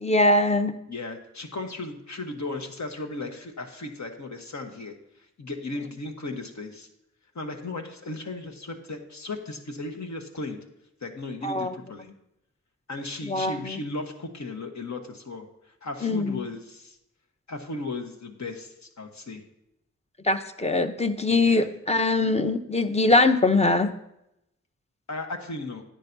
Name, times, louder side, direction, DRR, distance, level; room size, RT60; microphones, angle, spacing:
voice 1, 0.0-0.7 11.4-11.7 13.2-13.8 16.0-16.4 20.2-23.9, left 2 dB, 20° left, 8 dB, 0.7 m, -22 dB
voice 2, 0.9-4.9 5.4-6.9 7.3-10.6 11.0-12.1 12.9-15.5 15.8-17.0 17.5-19.4 21.3-21.7 25.1-25.8, left 2 dB, 65° left, 5 dB, 1.2 m, -36 dB
10.0 x 9.0 x 2.7 m, 0.83 s
wide cardioid pair, 55°, 30 cm